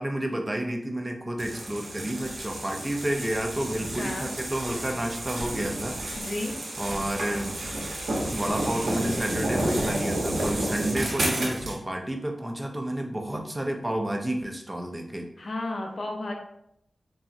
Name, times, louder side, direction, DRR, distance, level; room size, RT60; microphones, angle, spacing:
voice 1, 0.0-6.0 6.8-7.6 8.3-15.3, right 1 dB, 20° right, 3 dB, 0.4 m, -30 dB
sound 1, 1.4-11.8, right 1 dB, 80° right, 0.8 m, -31 dB
voice 2, 4.0-4.3 6.2-6.5 15.4-16.3, left 2 dB, 55° left, 1 dB, 0.5 m, -32 dB
3.6 x 2.0 x 2.6 m, 0.74 s
wide cardioid pair, 90°, 0 cm